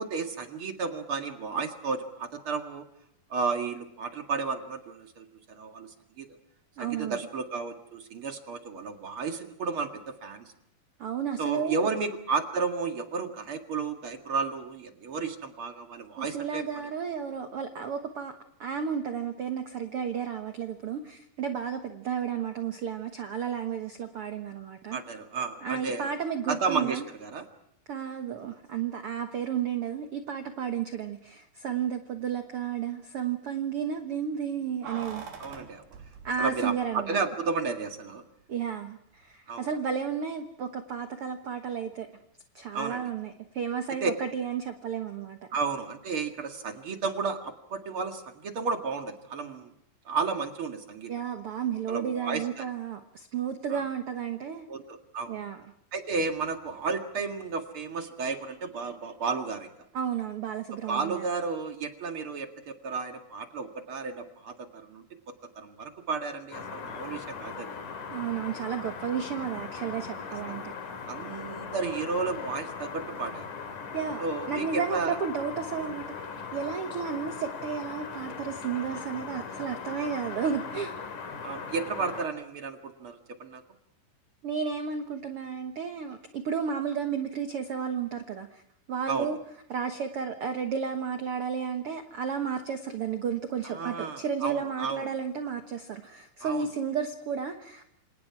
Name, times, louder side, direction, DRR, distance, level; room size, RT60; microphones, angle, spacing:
voice 1, 0.0-2.9 3.3-6.4 6.8-10.5 11.4-16.6 24.9-26.1 26.5-27.5 35.4-35.8 36.4-38.2 39.5-39.7 42.7-43.1 44.0-44.1 45.5-49.7 50.1-51.1 51.9-52.6 53.7-53.8 54.7-55.3 55.9-59.7 60.7-65.0 65.6-67.8 70.3-70.6 71.1-73.5 74.2-75.2 81.4-83.6 89.1-89.4 93.6-95.1 96.4-96.7, right 4 dB, 45° right, 5 dB, 2.2 m, -33 dB
voice 2, 6.8-7.2 11.0-11.9 16.2-18.3 18.6-25.0 25.6-27.0 27.9-35.2 36.2-37.2 38.5-42.1 42.5-45.4 51.1-54.7 55.3-55.6 59.9-61.3 68.1-70.7 73.9-76.1 76.5-80.9 84.4-88.6 88.9-89.4 89.7-97.8, right 7 dB, 65° right, 6 dB, 1.4 m, -32 dB
Keys jangling, 34.8-37.2 37.5-37.6, right 5 dB, 85° right, 5.1 m, -44 dB
sound 1, 66.5-82.3, left 5 dB, 55° left, 3.6 m, -39 dB
28.0 x 27.0 x 4.8 m, 0.73 s
omnidirectional pair, 4.4 m